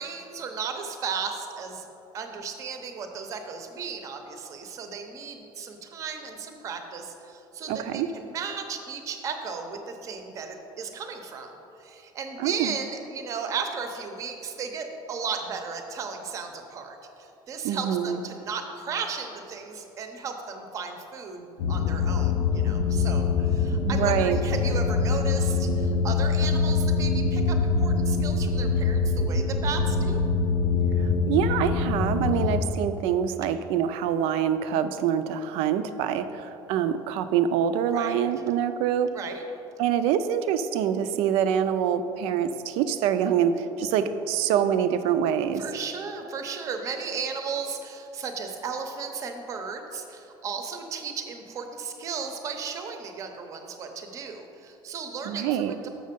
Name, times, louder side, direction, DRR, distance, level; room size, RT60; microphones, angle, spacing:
voice 1, 0.0-1.8 2.1-11.5 11.8-30.2 32.3-32.5 37.9-38.3 39.1-39.4 45.6-55.9, right 5 dB, 35° right, 5 dB, 0.6 m, -35 dB
voice 2, 7.7-8.1 12.4-12.8 17.6-18.2 23.8-24.4 31.0-39.1 39.8-45.6 55.3-55.7, right 9 dB, 75° right, 11 dB, 0.4 m, -25 dB
sound 1, 21.6-32.6, left 4 dB, 85° left, 0.6 m, -24 dB
6.5 x 6.3 x 5.2 m, 2.9 s
cardioid pair, 175°, 10 cm